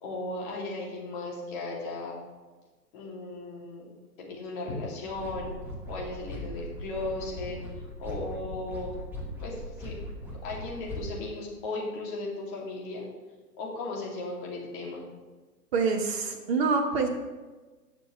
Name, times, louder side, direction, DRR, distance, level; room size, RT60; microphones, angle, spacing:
voice 1, 0.0-2.1 2.9-3.9 4.2-5.5 5.9-9.0 9.4-9.9 10.4-13.1 13.6-15.1, left 2 dB, 30° left, -3 dB, 2.6 m, -36 dB
sound 1, 5.1-11.1, equal, 5° right, 1.2 m, -39 dB
voice 2, 15.7-17.1, right 4 dB, 40° right, 2 dB, 1.2 m, -26 dB
18.0 x 6.9 x 3.2 m, 1.3 s
figure-of-eight pair, 125°, 48 cm